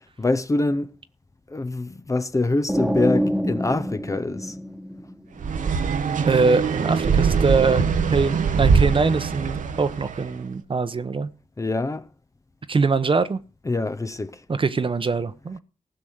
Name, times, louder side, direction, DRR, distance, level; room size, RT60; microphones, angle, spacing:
voice 1, 0.2-0.9 1.5-4.6 11.6-12.0 13.6-14.4, left 2 dB, 25° left, 0.8 m, -25 dB
sound 1, 2.7-5.5, equal, 5° right, 1.4 m, -26 dB
sound 2, 5.4-10.3, right 5 dB, 75° right, 1.1 m, -22 dB
voice 2, 6.2-11.3 12.7-13.4 14.5-15.6, right 4 dB, 40° right, 0.9 m, -23 dB
15.5 x 6.1 x 7.9 m
cardioid pair, 80°, 13 cm